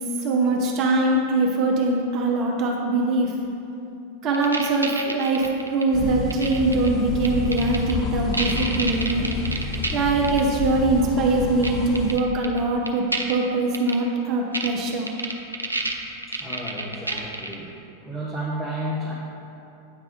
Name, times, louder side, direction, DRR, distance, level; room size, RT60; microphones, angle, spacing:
voice 1, 0.0-3.3 4.2-9.3 9.9-15.1, right 2 dB, 35° right, -1 dB, 0.8 m, -22 dB
sound 1, 4.3-5.8 6.3-6.9 7.2-7.9 8.3-9.9 10.2-10.4 11.6-11.7 11.9-12.6 12.9-13.3 13.7-13.9 14.5-14.7 15.1-17.5, right 2 dB, 85° right, 0.5 m, -28 dB
sound 2, 5.9-12.2, left 5 dB, 30° left, 0.5 m, -30 dB
voice 2, 16.3-17.7 18.0-19.1, right 1 dB, 5° left, -6 dB, 0.9 m, -32 dB
8.9 x 3.5 x 5.0 m, 2.8 s
figure-of-eight pair, 90°, 0 cm